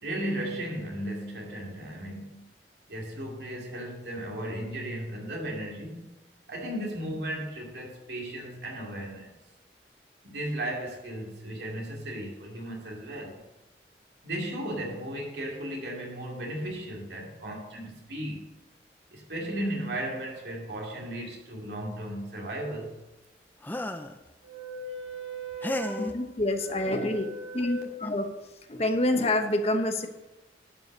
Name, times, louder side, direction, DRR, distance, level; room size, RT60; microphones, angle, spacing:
voice 1, 0.0-2.5 2.9-6.1 6.5-9.3 10.2-13.4 14.2-18.5 19.1-22.9 24.4-26.1 26.6-27.8, right 1 dB, 75° right, 2.7 m, -35 dB
sound 1, 23.6-24.2 25.6-26.1 27.5-27.7 28.0-28.3, left 1 dB, 10° left, 0.5 m, -34 dB
voice 2, 26.0-27.3 27.5-28.3 28.7-30.1, left 1 dB, 35° left, 1.0 m, -27 dB
12.0 x 5.6 x 6.6 m
head